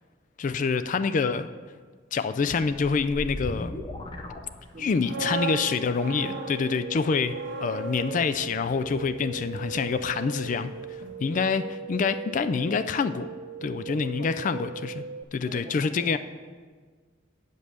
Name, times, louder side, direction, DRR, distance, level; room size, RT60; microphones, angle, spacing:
voice 1, 0.4-1.5 2.1-3.8 4.8-7.3 7.6-10.7 11.2-13.3 13.6-15.0 15.3-16.2, left 5 dB, 45° left, 12 dB, 0.3 m, -26 dB
sound 1, 2.5-5.2, left 1 dB, 25° left, 0.7 m, -37 dB
voice 2, 4.7-5.5 13.9-14.5 15.4-16.2, right 2 dB, 45° right, 5 dB, 0.8 m, -44 dB
sound 2, 4.8-10.7 11.0-11.2, right 4 dB, 75° right, 0.8 m, -38 dB
sound 3, 5.7-15.2, right 5 dB, 60° right, 0.3 m, -39 dB
8.2 x 5.3 x 7.5 m, 1.5 s
head